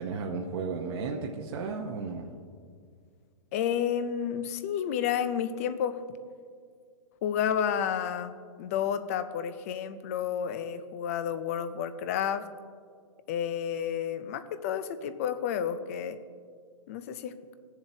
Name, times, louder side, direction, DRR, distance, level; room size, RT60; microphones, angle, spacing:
voice 1, 0.0-2.3, right 4 dB, 45° right, 0 dB, 0.8 m, -34 dB
voice 2, 3.5-6.0 7.2-12.5 13.3-16.2 16.9-17.4, left 8 dB, 25° left, 12 dB, 0.3 m, -31 dB
17.5 x 7.3 x 2.7 m, 2.1 s
hypercardioid pair, 165°, 19 cm